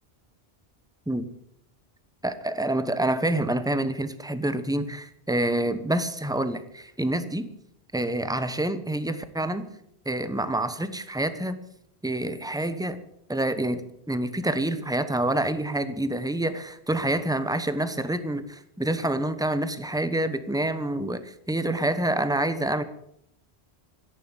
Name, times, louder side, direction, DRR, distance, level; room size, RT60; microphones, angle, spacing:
voice 1, 2.2-7.5 7.9-9.7 10.0-11.6 12.0-13.0 13.3-22.8, right 1 dB, 5° right, 11 dB, 1.0 m, -27 dB
14.0 x 10.5 x 8.2 m, 0.75 s
omnidirectional pair, 1.1 m